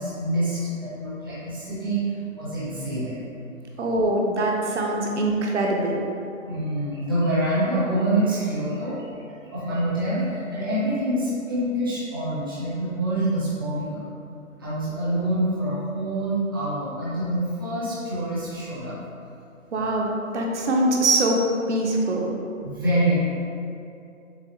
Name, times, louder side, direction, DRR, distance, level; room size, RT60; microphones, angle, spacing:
voice 1, 0.0-2.0 2.3-3.2 6.5-9.1 9.5-14.0 14.6-18.9 22.6-23.2, right 1 dB, 15° right, -12 dB, 0.5 m, -26 dB
voice 2, 3.8-6.0 19.7-21.4 21.7-22.3, right 2 dB, 60° right, -1 dB, 0.6 m, -23 dB
6.6 x 2.4 x 2.7 m, 2.7 s
hypercardioid pair, 165°, 40 cm